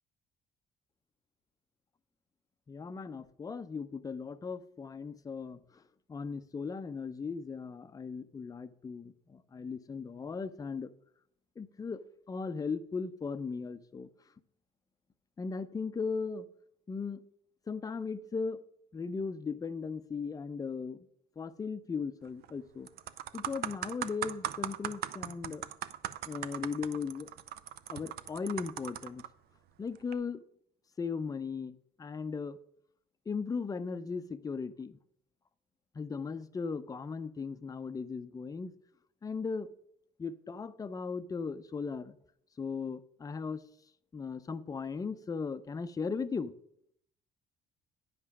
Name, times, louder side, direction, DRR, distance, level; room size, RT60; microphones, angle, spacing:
voice 1, 2.7-5.8 6.1-10.9 11.6-14.1 15.4-16.5 16.9-17.2 17.7-18.6 18.9-21.1 21.4-22.9 23.3-25.6 26.3-27.3 27.9-29.2 29.8-30.4 31.0-32.6 33.3-35.0 35.9-38.7 39.2-39.7 40.2-42.1 42.6-43.6 44.1-46.5, left 5 dB, 20° left, 11 dB, 0.5 m, -37 dB
sound 1, 22.2-22.5 22.9-29.3 30.0-30.1, right 12 dB, 70° right, 0.6 m, -39 dB
9.5 x 5.6 x 6.0 m, 0.69 s
cardioid pair, 110°, 17 cm